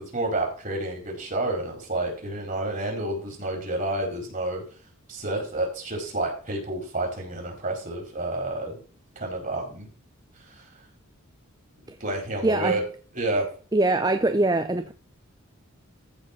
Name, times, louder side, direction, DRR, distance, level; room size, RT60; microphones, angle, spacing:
voice 1, 0.0-4.6 5.1-8.8 9.2-9.9 10.5-10.6 12.0-12.8 13.1-13.4, right 2 dB, 35° right, 4.5 m, -29 dB
voice 2, 12.4-12.8 13.7-14.9, right 2 dB, 15° right, 0.5 m, -23 dB
14.5 x 4.8 x 6.0 m
head